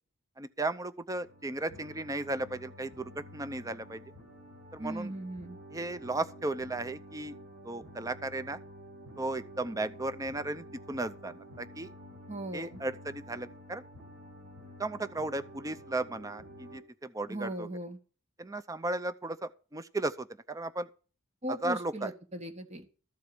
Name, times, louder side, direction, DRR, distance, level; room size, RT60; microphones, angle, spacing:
voice 1, 0.4-4.0 4.7-5.1 5.7-7.3 7.7-8.6 9.2-11.9 12.5-13.8 14.8-16.4 16.7-16.8 17.1-17.7 18.4-20.9 21.6-22.1, right 2 dB, 15° right, 0.6 m, -35 dB
sound 1, 1.1-16.8, equal, 65° right, 4.9 m, -50 dB
voice 2, 4.8-5.6 12.3-12.8 17.3-18.0 21.4-22.9, right 1 dB, 35° right, 1.5 m, -38 dB
13.5 x 4.7 x 8.4 m
head